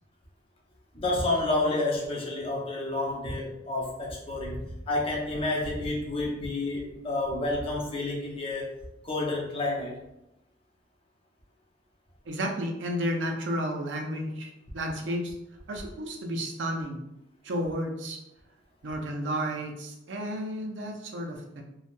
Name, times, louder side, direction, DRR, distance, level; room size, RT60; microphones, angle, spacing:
voice 1, 0.9-8.7 9.0-10.0, left 2 dB, 30° left, -3 dB, 0.6 m, -29 dB
voice 2, 12.3-15.3 15.7-17.0 17.4-18.2 18.8-21.6, equal, 80° right, 2 dB, 0.5 m, -32 dB
3.1 x 2.1 x 2.5 m, 0.88 s
head